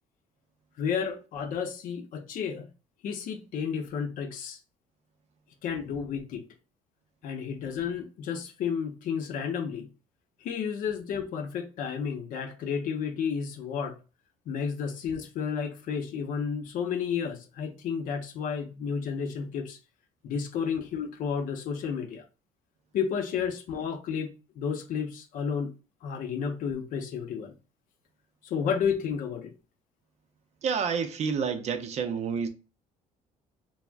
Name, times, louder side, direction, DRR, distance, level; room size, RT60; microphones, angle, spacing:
voice 1, 0.8-2.7 3.0-4.6 5.6-6.4 7.2-9.9 10.4-14.0 14.5-19.8 20.2-22.2 22.9-25.7 26.0-27.5 28.4-29.5, left 6 dB, 60° left, 0.6 m, -32 dB
voice 2, 30.6-32.5, right 6 dB, 45° right, 0.5 m, -29 dB
2.4 x 2.0 x 3.3 m
cardioid pair, 110°, 15 cm